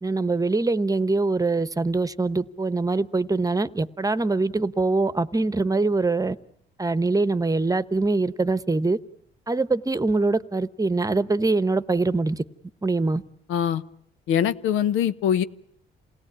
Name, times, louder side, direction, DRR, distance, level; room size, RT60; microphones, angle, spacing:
voice 1, 0.0-6.4 6.8-9.0 9.5-12.4 12.8-13.2, right 3 dB, 15° right, 1.0 m, -23 dB
voice 2, 13.5-13.8 14.3-15.4, left 9 dB, 90° left, 1.0 m, -22 dB
28.0 x 17.5 x 8.8 m
cardioid pair, 90°, 20 cm